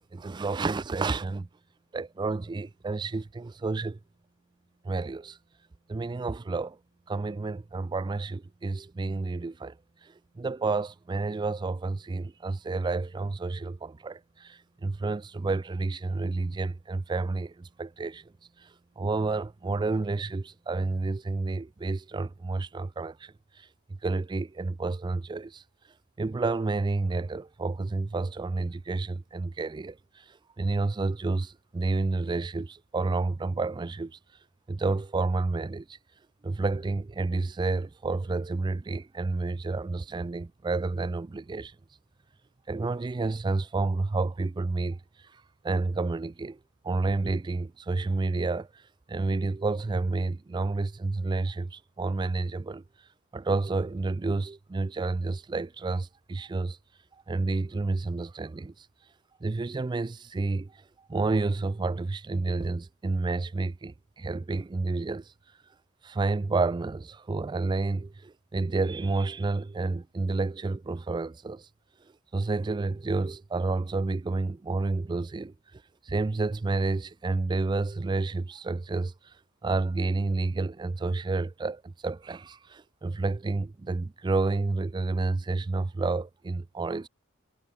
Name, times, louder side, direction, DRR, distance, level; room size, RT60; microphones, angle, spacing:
voice 1, 0.1-1.5 1.9-4.0 4.8-5.4 5.9-6.8 7.1-9.7 10.0-18.2 18.6-18.7 19.0-23.7 24.0-25.6 26.2-30.2 30.6-34.2 34.7-36.0 36.4-41.7 42.7-45.0 45.6-46.6 46.8-48.7 49.1-52.8 53.3-56.8 57.3-58.9 59.4-60.7 61.1-65.3 66.0-71.7 72.3-79.1 79.6-87.1, right 3 dB, 20° right, 0.3 m, -30 dB
head